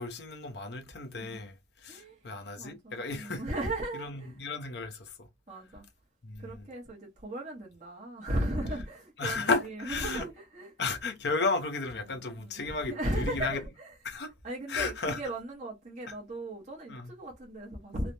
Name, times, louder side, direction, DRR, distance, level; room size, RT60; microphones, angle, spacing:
voice 1, 0.0-3.4 3.9-5.3 6.2-6.7 9.2-10.2 10.8-13.6 14.0-14.3 14.7-15.2 16.9-17.1, left 3 dB, 60° left, 0.7 m, -33 dB
voice 2, 1.9-2.3 2.6-4.4 5.5-5.9 6.4-10.7 12.0-18.1, right 1 dB, 40° right, 0.9 m, -37 dB
3.2 x 2.1 x 2.6 m
head